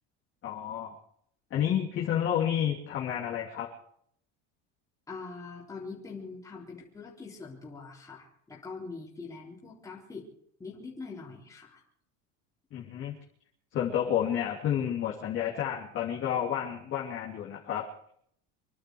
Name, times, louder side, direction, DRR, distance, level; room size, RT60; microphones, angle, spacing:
voice 1, 0.4-1.0 1.5-3.7 12.7-13.1 13.7-17.8, left 10 dB, 40° left, -4 dB, 3.1 m, -30 dB
voice 2, 5.1-10.3 10.6-11.8, left 4 dB, 10° left, -5 dB, 3.8 m, -43 dB
26.0 x 11.5 x 4.7 m, 0.67 s
cardioid pair, 155°, 33 cm